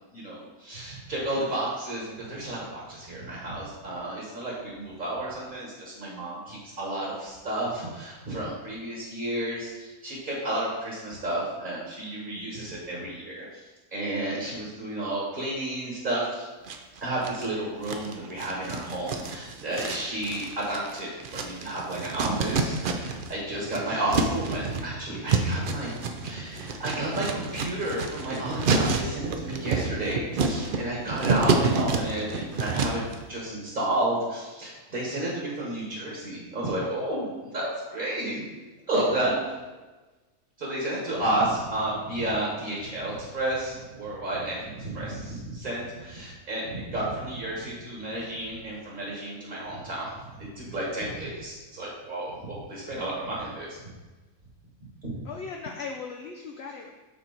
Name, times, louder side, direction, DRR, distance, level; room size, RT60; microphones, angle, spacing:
voice 1, 0.1-13.6 13.9-16.5 17.0-25.9 26.2-33.0 33.3-38.4 38.9-39.5 40.6-50.1 50.4-53.8 55.0-55.2, right 1 dB, 35° right, -4 dB, 1.4 m, -31 dB
sound 1, 16.7-17.5 17.8-23.3 23.6-33.1, right 4 dB, 85° right, 0.4 m, -28 dB
voice 2, 44.6-44.9 55.2-56.9, left 4 dB, 70° left, 2 dB, 0.6 m, -38 dB
7.4 x 4.4 x 3.9 m, 1.2 s
omnidirectional pair, 1.6 m